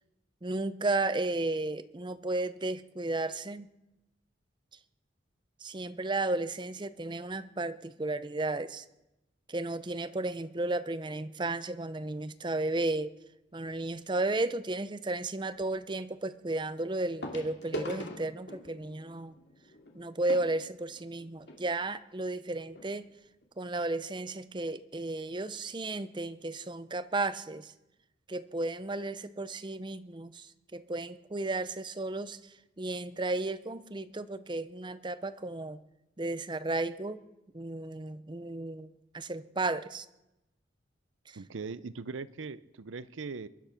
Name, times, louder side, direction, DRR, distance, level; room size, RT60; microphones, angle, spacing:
voice 1, 0.4-3.7 5.6-8.8 9.5-13.1 13.5-19.4 19.9-23.1 23.6-27.7 28.3-35.8 36.2-37.2 37.5-40.1 41.3-41.4, right 2 dB, 25° right, 13 dB, 0.6 m, -34 dB
sound 1, 13.7-13.9 15.6-15.7 17.2-21.6 22.4-22.5 22.7-22.9 23.4-23.5, left 1 dB, 60° left, 2.4 m, -43 dB
voice 2, 41.4-43.5, right 4 dB, 90° right, 17 dB, 0.6 m, -40 dB
22.5 x 11.0 x 5.9 m, 0.94 s
head